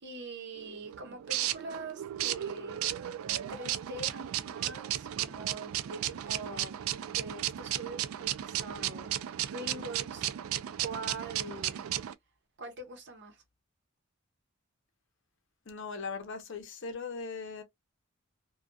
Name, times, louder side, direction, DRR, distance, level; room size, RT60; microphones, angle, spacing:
voice 1, 0.0-2.9 3.5-6.8 7.1-10.3 10.8-11.8 12.6-13.4, right 3 dB, 55° right, 0.9 m, -43 dB
sound 1, 0.6-12.1, right 12 dB, 80° right, 0.3 m, -35 dB
voice 2, 15.7-17.6, left 4 dB, 60° left, 0.7 m, -39 dB
2.4 x 2.3 x 2.2 m
head